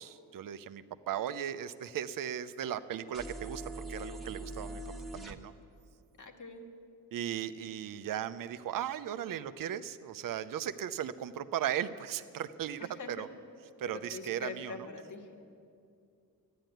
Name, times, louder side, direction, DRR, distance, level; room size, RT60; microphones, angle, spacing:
voice 1, 0.0-4.8 5.1-5.5 7.1-13.3 13.8-14.9, right 10 dB, 60° right, 13 dB, 0.7 m, -37 dB
sound 1, 3.1-5.4, right 1 dB, ahead, 1.3 m, -42 dB
voice 2, 6.2-6.6 12.8-13.3 13.9-15.4, left 4 dB, 55° left, 4 dB, 1.9 m, -44 dB
13.5 x 10.5 x 9.2 m, 2.4 s
cardioid pair, 85°, 37 cm